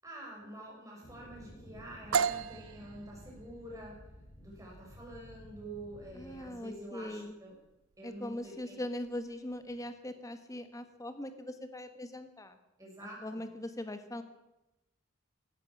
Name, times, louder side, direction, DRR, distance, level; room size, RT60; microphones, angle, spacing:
voice 1, 0.0-3.9 4.4-7.5 8.0-8.8 12.8-13.4, right 1 dB, 15° right, -3 dB, 5.8 m, -47 dB
sound 1, 1.0-6.5, equal, 50° left, 3.3 m, -53 dB
sound 2, 2.1-9.8, right 6 dB, 85° right, 0.6 m, -38 dB
voice 2, 6.1-7.3 8.0-12.6 13.0-14.2, left 1 dB, 15° left, 9 dB, 1.2 m, -41 dB
16.0 x 12.0 x 6.1 m, 0.95 s
head